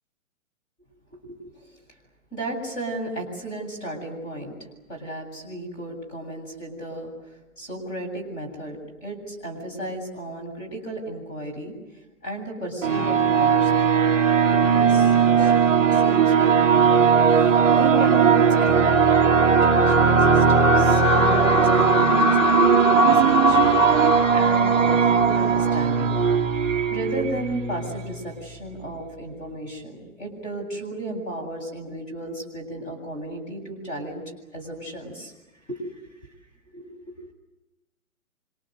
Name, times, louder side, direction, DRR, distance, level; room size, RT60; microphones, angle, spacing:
voice 1, 1.1-1.7 2.3-4.5 4.9-7.1 7.6-11.7 12.2-17.0 17.4-26.2 26.9-34.2 34.5-35.3 35.7-36.0 36.7-37.1, right 1 dB, 20° left, 0 dB, 7.8 m, -34 dB
sound 1, 12.8-28.1, right 5 dB, 5° right, 0.9 m, -18 dB
27.5 x 26.5 x 8.1 m, 1.0 s
hypercardioid pair, 165°, 42 cm